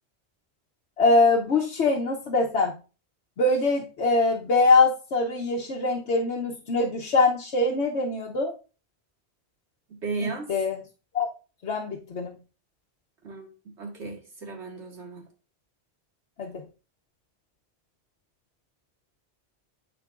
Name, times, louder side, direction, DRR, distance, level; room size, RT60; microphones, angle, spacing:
voice 1, 1.0-2.7 3.4-8.5 10.2-10.8 11.1-11.3 11.6-12.3 16.4-16.6, left 3 dB, 80° left, -2 dB, 1.2 m, -23 dB
voice 2, 9.9-10.5 13.2-15.2, right 3 dB, 80° right, 1 dB, 2.0 m, -35 dB
12.5 x 4.5 x 2.5 m, 0.34 s
omnidirectional pair, 1.1 m